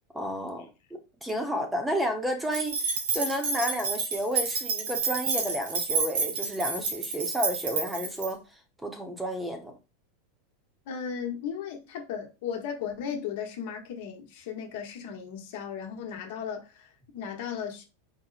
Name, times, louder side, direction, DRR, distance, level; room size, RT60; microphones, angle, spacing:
voice 1, 0.1-0.7 1.2-8.4 8.8-9.7, equal, 5° right, 0.8 m, -31 dB
sound 1, 2.5-8.3, right 4 dB, 80° right, 1.6 m, -29 dB
voice 2, 10.9-17.8, left 7 dB, 65° left, 1.0 m, -36 dB
4.4 x 2.1 x 4.0 m
supercardioid pair, 130°, 0 cm